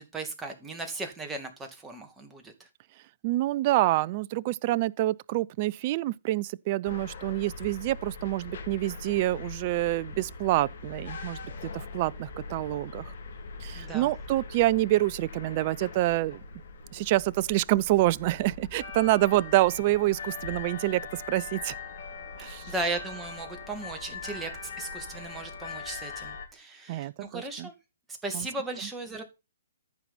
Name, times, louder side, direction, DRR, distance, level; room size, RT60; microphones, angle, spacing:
voice 1, 0.0-2.5 13.7-14.1 22.4-27.7 28.2-29.2, right 2 dB, 10° right, 2.1 m, -36 dB
voice 2, 3.2-11.4 11.7-13.1 13.6-16.4 16.9-21.7 22.4-22.7 26.9-27.7 28.3-28.5, right 17 dB, 35° right, 0.5 m, -27 dB
sound 1, 6.9-26.5, left 4 dB, 55° left, 2.8 m, -41 dB
13.5 x 5.9 x 4.3 m
figure-of-eight pair, 125°, 0 cm